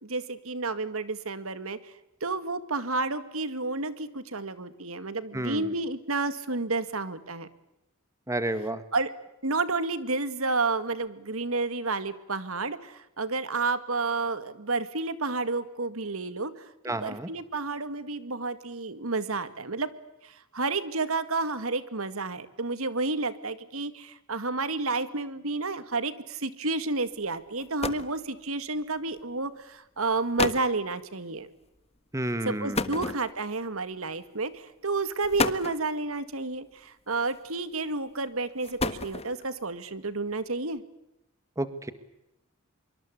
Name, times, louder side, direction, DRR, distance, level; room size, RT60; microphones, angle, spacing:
voice 1, 0.0-1.9 2.2-7.5 8.9-9.1 9.4-19.9 20.2-31.5 32.5-40.8, right 3 dB, 70° right, 13 dB, 2.1 m, -31 dB
voice 2, 5.3-5.7 8.3-8.8 16.8-17.3 32.1-33.1 41.6-41.9, right 1 dB, 15° right, 12 dB, 1.8 m, -31 dB
sound 1, 27.2-27.3 27.6-28.2 29.2-29.4 30.0-30.1 30.4-30.7 32.7-33.6 34.5-34.7 35.2-35.9 37.1-37.6 38.4-39.5, left 3 dB, 30° left, 1.4 m, -31 dB
25.5 x 24.5 x 8.4 m, 0.87 s
head